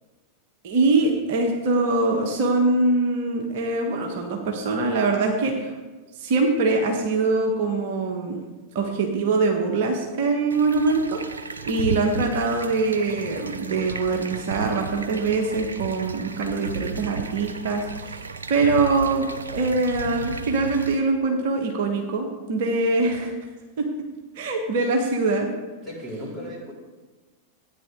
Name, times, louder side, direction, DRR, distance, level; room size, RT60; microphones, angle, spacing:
voice 1, 0.6-5.7 6.2-8.4 8.7-11.2 11.6-18.2 18.5-19.3 19.5-23.3 23.8-23.9 24.4-25.5, right 3 dB, 50° right, 2 dB, 1.3 m, -23 dB
sound 1, 10.5-21.0, right 4 dB, 75° right, 0.6 m, -34 dB
voice 2, 25.8-26.7, equal, 15° right, -4 dB, 3.2 m, -35 dB
13.5 x 9.3 x 3.7 m, 1.2 s
figure-of-eight pair, 90°, 0 cm